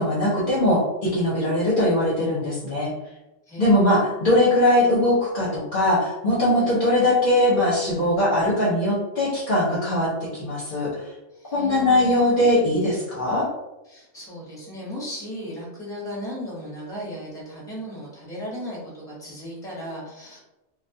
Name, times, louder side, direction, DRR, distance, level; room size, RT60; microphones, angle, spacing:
voice 1, 0.0-2.9 3.6-10.9 11.5-13.5, left 1 dB, 55° left, -6 dB, 0.7 m, -21 dB
voice 2, 3.5-4.1 6.5-6.8 11.3-12.3 13.9-20.4, equal, 5° left, -6 dB, 0.8 m, -36 dB
2.3 x 2.2 x 2.6 m, 0.98 s
omnidirectional pair, 1.2 m